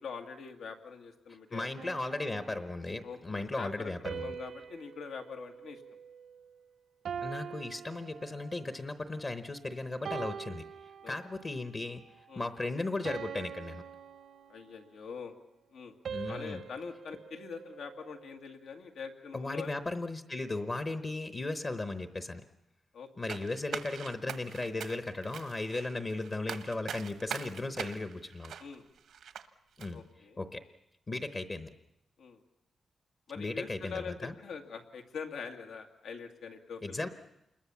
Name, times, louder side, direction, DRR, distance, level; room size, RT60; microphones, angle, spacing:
voice 1, 0.0-1.9 3.0-5.8 11.0-11.2 12.3-12.5 14.5-15.3 15.7-15.9 16.3-19.7 22.9-23.1 28.6-28.9 29.9-30.4 32.2-32.4 33.3-37.1, left 5 dB, 85° left, 5 dB, 2.2 m, -43 dB
voice 2, 1.5-4.3 7.2-10.6 11.1-12.0 12.3-13.8 16.1-16.6 19.3-22.4 23.2-28.5 29.8-30.0 30.4-30.6 31.1-31.7 33.3-34.3 36.8-37.1, left 2 dB, 25° left, 9 dB, 0.9 m, -36 dB
sound 1, 1.8-3.1 4.1-6.6 7.1-8.8 9.3-9.6 10.1-11.6 12.1-12.4 13.1-15.0 16.1-18.4, right 7 dB, 65° right, 0.8 m, -44 dB
sound 2, 23.3-29.5 29.8-29.9, right 8 dB, 85° right, 1.2 m, -42 dB
27.5 x 21.5 x 7.2 m, 0.86 s
wide cardioid pair, 175°, 0 cm